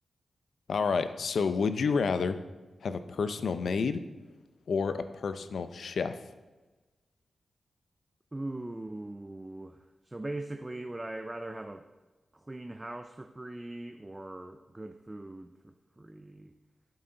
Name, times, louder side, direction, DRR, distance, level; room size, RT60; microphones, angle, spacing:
voice 1, 0.7-2.4 2.8-4.0 4.7-6.2, left 5 dB, 75° left, 11 dB, 0.5 m, -29 dB
voice 2, 8.3-11.9 12.3-16.5, right 2 dB, 20° right, 8 dB, 0.4 m, -41 dB
8.1 x 7.9 x 3.8 m, 1.2 s
wide cardioid pair, 85°, 0 cm